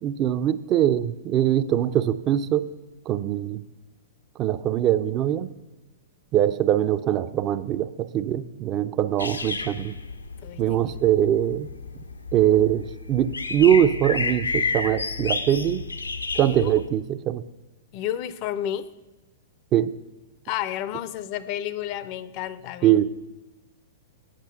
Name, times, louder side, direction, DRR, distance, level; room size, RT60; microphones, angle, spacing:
voice 1, 0.0-2.7 3.1-3.6 4.4-5.5 6.3-10.0 10.6-11.7 12.3-15.9 16.3-17.4 19.7-19.9 22.8-23.1, right 11 dB, 30° right, 0.4 m, -22 dB
sound 1, 9.2-16.9, left 4 dB, 80° left, 0.6 m, -31 dB
voice 2, 10.4-11.0 16.4-16.8 17.9-18.9 20.4-23.0, left 11 dB, 40° left, 0.4 m, -31 dB
8.9 x 5.7 x 6.8 m
figure-of-eight pair, 105°, 0 cm